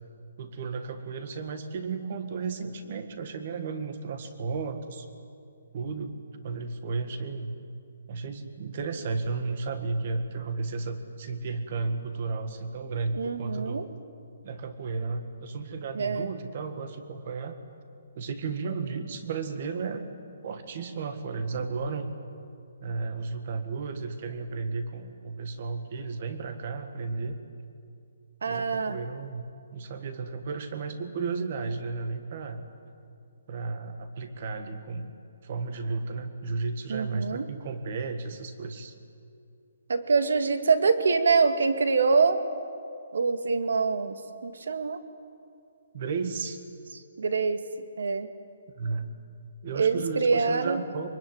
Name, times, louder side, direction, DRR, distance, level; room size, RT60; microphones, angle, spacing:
voice 1, 0.4-5.1 5.7-6.2 6.4-7.6 8.1-13.9 14.4-17.6 18.2-20.0 20.4-22.1 22.8-27.4 28.5-32.6 33.5-35.1 35.4-39.0 45.9-46.6 48.8-49.2 49.6-51.1, right 4 dB, 35° right, 8 dB, 1.9 m, -33 dB
voice 2, 13.1-13.9 16.0-16.3 28.4-29.0 36.9-37.5 39.9-42.4 43.1-44.2 44.4-45.0 47.2-47.6 48.0-48.3 49.7-50.8, right 4 dB, 80° right, 9 dB, 2.0 m, -25 dB
24.5 x 23.0 x 9.6 m, 2.5 s
hypercardioid pair, 175°, 0 cm